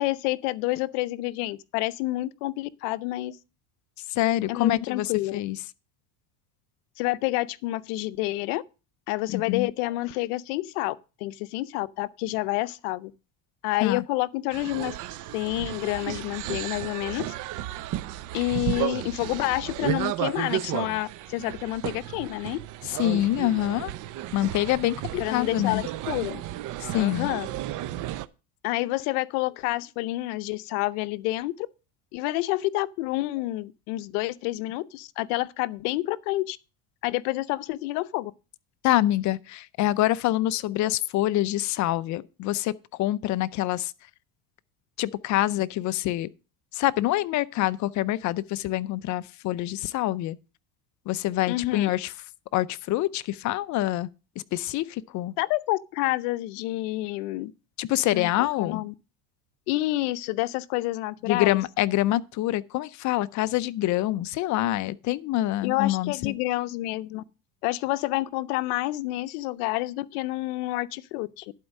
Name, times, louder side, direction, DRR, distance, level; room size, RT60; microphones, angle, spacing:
voice 1, 0.0-3.4 4.5-5.4 7.0-8.6 9.1-13.1 13.6-15.0 15.3-17.3 18.3-22.6 25.2-26.4 26.9-27.5 28.6-31.7 32.1-36.6 37.0-38.3 51.5-51.9 55.4-57.5 58.1-58.9 59.7-61.6 65.6-67.2 67.6-71.5, left 18 dB, 80° left, 0.7 m, -29 dB
voice 2, 4.1-5.6 9.3-9.7 13.8-14.0 22.8-23.9 24.3-25.8 26.8-27.3 38.8-43.9 45.0-46.3 46.7-50.4 51.1-52.1 52.5-54.1 54.5-55.3 57.8-58.8 61.3-66.3, left 15 dB, 40° left, 0.5 m, -26 dB
sound 1, 14.5-28.3, right 14 dB, 45° right, 0.6 m, -33 dB
11.5 x 4.5 x 6.3 m
cardioid pair, 130°, 44 cm